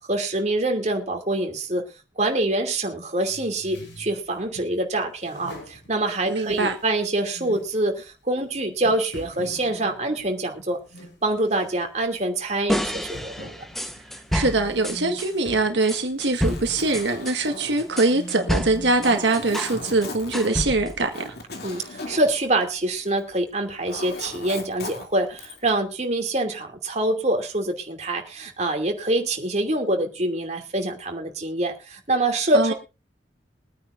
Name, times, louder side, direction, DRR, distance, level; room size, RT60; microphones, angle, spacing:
voice 1, 0.0-1.8 2.2-10.8 11.2-13.6 21.6-32.7, right 1 dB, 40° right, 2.7 m, -25 dB
sound 1, 3.2-4.7 5.2-7.0 7.3-7.7 8.3-8.4 8.8-11.2 11.5-11.8 12.2-12.3 13.1-17.1 17.6-19.3, equal, 85° left, 7.7 m, -43 dB
voice 2, 6.3-6.8 14.3-21.3 32.5-32.7, right 2 dB, 80° right, 1.6 m, -23 dB
sound 2, 12.7-15.3 15.9-19.8 20.0-21.0, equal, ahead, 1.0 m, -29 dB
Zipper (clothing), 16.2-23.3 23.6-25.7, left 2 dB, 60° left, 2.7 m, -39 dB
23.0 x 9.4 x 2.6 m
head